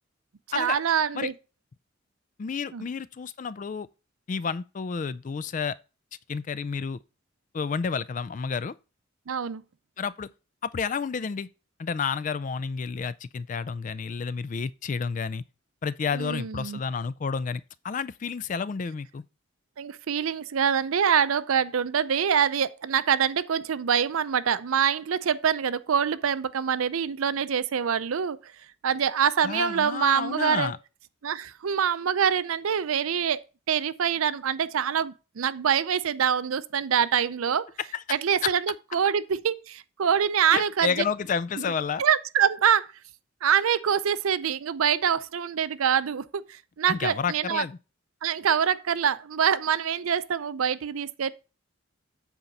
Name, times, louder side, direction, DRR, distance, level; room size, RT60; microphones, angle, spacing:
voice 1, 0.5-1.3 2.7-2.8 9.3-9.6 16.1-16.8 19.8-28.5 28.8-30.7 31.2-33.4 33.7-37.6 38.1-41.0 42.0-42.9 43.4-47.6 48.2-51.3, right 8 dB, 85° right, 0.5 m, -25 dB
voice 2, 2.4-3.9 4.3-5.8 6.3-7.0 7.5-8.7 10.0-10.3 10.6-11.5 11.8-15.4 15.8-19.2 29.4-30.8 37.9-38.0 38.4-38.5 40.5-42.0 46.9-47.8, left 6 dB, 35° left, 0.3 m, -30 dB
8.2 x 4.3 x 5.3 m
head